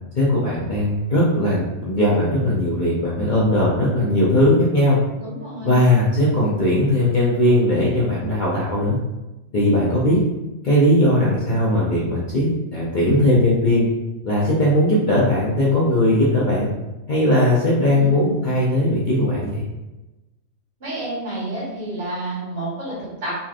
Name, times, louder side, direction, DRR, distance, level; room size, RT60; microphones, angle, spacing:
voice 1, 0.2-5.0 5.6-9.0 9.5-10.2 10.6-13.9 14.2-16.7 17.1-19.6, left 1 dB, 55° left, -7 dB, 0.6 m, -18 dB
voice 2, 5.2-5.8 17.8-18.2 20.8-23.4, right 1 dB, 55° right, -8 dB, 1.5 m, -30 dB
3.1 x 2.7 x 2.3 m, 1.0 s
omnidirectional pair, 1.3 m